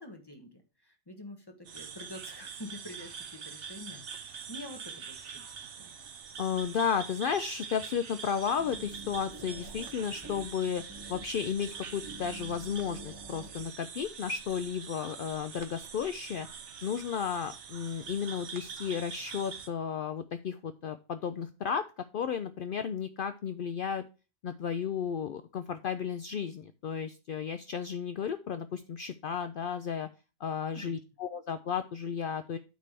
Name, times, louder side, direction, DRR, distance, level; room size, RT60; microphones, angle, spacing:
voice 1, 0.0-5.9 30.7-30.9, left 1 dB, 20° left, 4 dB, 1.4 m, -47 dB
sound 1, 1.6-19.7, right 6 dB, 75° right, 1.2 m, -44 dB
voice 2, 6.4-10.8 11.1-16.5 16.8-24.0 24.4-30.1 30.4-32.6, left 7 dB, 60° left, 10 dB, 0.6 m, -33 dB
sound 2, 8.6-13.7, right 1 dB, 20° right, 0.7 m, -48 dB
9.1 x 3.4 x 6.6 m, 0.32 s
omnidirectional pair, 1.2 m